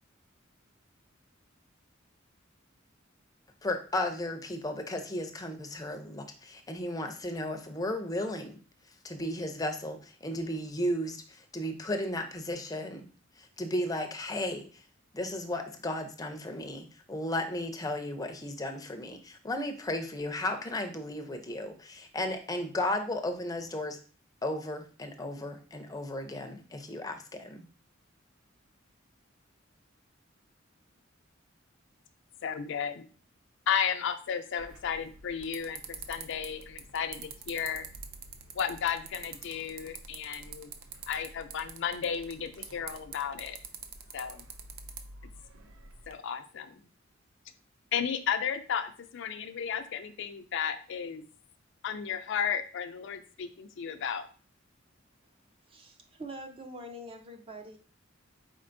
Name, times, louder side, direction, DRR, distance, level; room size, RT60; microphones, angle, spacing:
voice 1, 3.6-8.6 9.0-13.1 13.6-14.7 15.1-24.0 24.4-27.6, left 1 dB, 20° left, 5 dB, 0.5 m, -34 dB
voice 2, 32.4-33.1 33.7-37.8 38.5-40.7 41.1-43.6 44.1-44.4 46.1-46.8 47.9-51.3 51.8-54.2, left 7 dB, 65° left, 8 dB, 0.4 m, -33 dB
sound 1, 34.6-46.1, right 5 dB, 85° right, 0.5 m, -47 dB
voice 3, 55.7-57.8, right 1 dB, 30° right, 5 dB, 0.6 m, -44 dB
4.4 x 4.1 x 2.5 m, 0.39 s
head